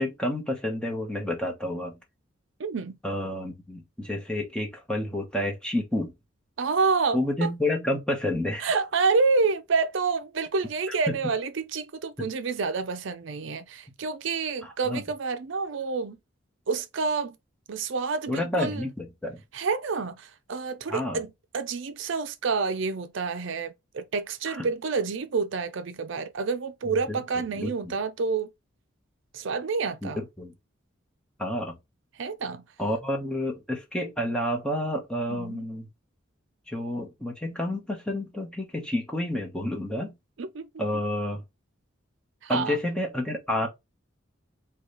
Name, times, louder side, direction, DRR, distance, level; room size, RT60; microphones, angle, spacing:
voice 1, 0.0-2.0 3.0-6.1 7.1-8.7 11.1-11.2 12.2-12.3 14.6-15.0 18.3-19.4 20.9-21.2 24.5-24.7 27.1-27.2 27.5-27.7 30.0-30.5 31.4-31.8 32.8-35.9 36.7-40.1 40.8-41.4 42.5-43.7, left 1 dB, 5° left, 1.0 m, -29 dB
voice 2, 2.6-2.9 6.6-7.5 8.6-16.2 16.7-17.3 17.7-18.9 19.5-28.5 29.3-30.2 32.2-32.6 35.3-35.6 40.4-40.7 42.4-42.8, right 4 dB, 65° right, 0.5 m, -28 dB
4.9 x 2.3 x 3.9 m
head